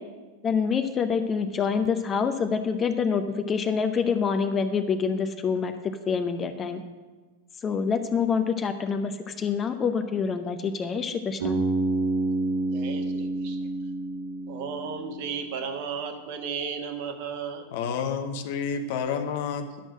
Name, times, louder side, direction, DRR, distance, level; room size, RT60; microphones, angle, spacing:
voice 1, 0.4-5.7 6.1-6.8 7.6-11.6, left 6 dB, 25° left, 8 dB, 0.7 m, -26 dB
Bass guitar, 11.4-15.5, right 2 dB, 65° right, 2.1 m, -28 dB
voice 2, 12.7-13.6 14.5-17.7, right 6 dB, 45° right, 5 dB, 1.3 m, -34 dB
voice 3, 17.7-19.8, left 6 dB, 50° left, 8 dB, 0.9 m, -29 dB
11.5 x 6.2 x 6.4 m, 1.3 s
figure-of-eight pair, 90°, 0 cm